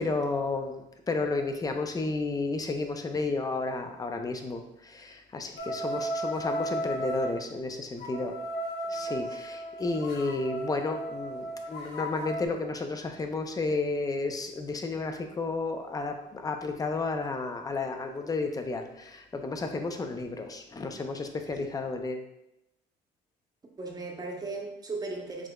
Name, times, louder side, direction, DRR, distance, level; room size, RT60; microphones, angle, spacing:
voice 1, 0.0-8.3 8.9-22.2, left 3 dB, 20° left, 6 dB, 0.5 m, -32 dB
sound 1, 5.6-7.3 8.0-12.5, right 1 dB, 85° left, 0.8 m, -35 dB
voice 2, 8.9-9.4 21.4-21.7 23.8-25.5, right 3 dB, 20° right, 1 dB, 0.8 m, -38 dB
4.8 x 3.6 x 2.2 m, 0.86 s
cardioid pair, 110°, 17 cm